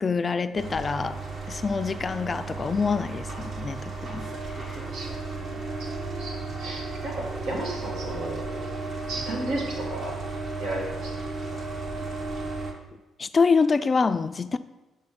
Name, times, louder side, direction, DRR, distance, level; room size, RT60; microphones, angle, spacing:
voice 1, 0.0-4.8 13.2-14.6, left 5 dB, 35° left, 0.3 m, -26 dB
sound 1, 0.6-12.7, right 3 dB, 55° right, 1.3 m, -34 dB
voice 2, 6.2-8.6 9.0-10.2 10.6-11.2, right 1 dB, 85° right, 1.6 m, -34 dB
5.3 x 5.2 x 5.6 m
cardioid pair, 90°, 0 cm